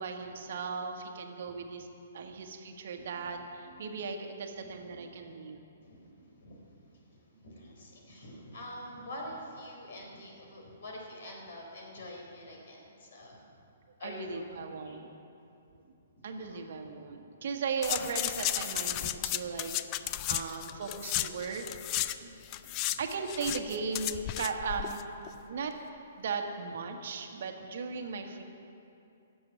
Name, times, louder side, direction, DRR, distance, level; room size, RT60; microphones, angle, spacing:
voice 1, 0.0-1.9 2.1-5.6 14.0-15.1 16.2-21.6 22.2-22.4 23.0-25.0 25.4-25.7 26.2-28.4, right 5 dB, 55° right, 4 dB, 1.4 m, -37 dB
voice 2, 6.4-13.4 14.0-14.5 14.8-15.0 16.4-16.6 17.1-17.2 19.1-19.5 20.2-20.3 21.3-21.4 22.6-23.0 25.3-25.5, left 1 dB, 60° left, 0 dB, 3.9 m, -46 dB
sound 1, 17.8-22.2 22.4-25.0 25.3-25.4, left 14 dB, 30° left, 0.4 m, -34 dB
13.0 x 7.8 x 9.8 m, 2.7 s
figure-of-eight pair, 125°, 0 cm